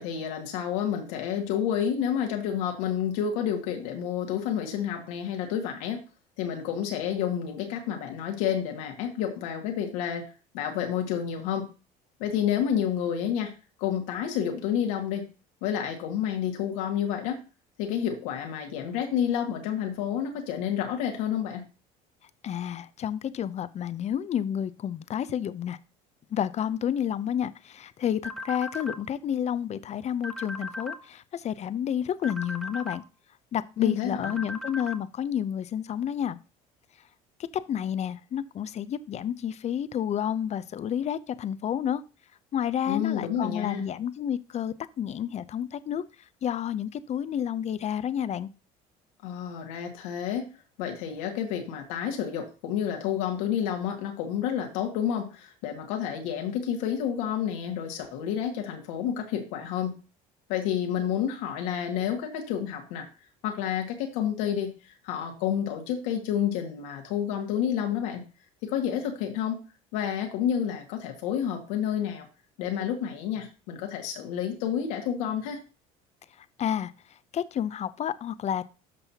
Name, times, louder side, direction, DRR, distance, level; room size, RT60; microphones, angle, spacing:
voice 1, 0.0-6.0 6.4-11.7 12.2-13.5 13.8-15.3 15.6-17.4 17.8-21.6 33.8-34.3 42.9-43.8 49.2-50.5 50.8-59.9 60.5-63.1 63.4-68.2 68.6-69.6 69.9-72.3 72.6-75.6, left 9 dB, 90° left, 2.1 m, -29 dB
voice 2, 22.4-25.8 26.3-33.0 33.5-36.4 37.5-42.0 42.5-46.0 46.4-48.5 76.4-76.9 77.3-78.6, left 9 dB, 40° left, 0.7 m, -30 dB
sound 1, 28.2-29.0 30.2-31.0 32.2-33.0 34.2-35.0, left 2 dB, ahead, 1.3 m, -37 dB
13.0 x 5.5 x 2.9 m
supercardioid pair, 95°, 17 cm